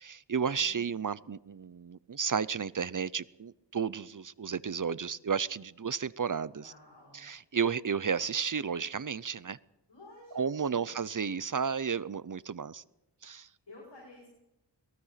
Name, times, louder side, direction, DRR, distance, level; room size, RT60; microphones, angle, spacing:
voice 1, 0.0-6.7 7.1-9.6 10.3-12.8 13.2-13.5, right 6 dB, 45° right, 0.7 m, -33 dB
voice 2, 0.6-1.0 6.5-7.2 9.9-10.9 13.7-14.3, left 2 dB, 75° left, 6.5 m, -52 dB
23.5 x 19.0 x 5.8 m
wide cardioid pair, 65°, 43 cm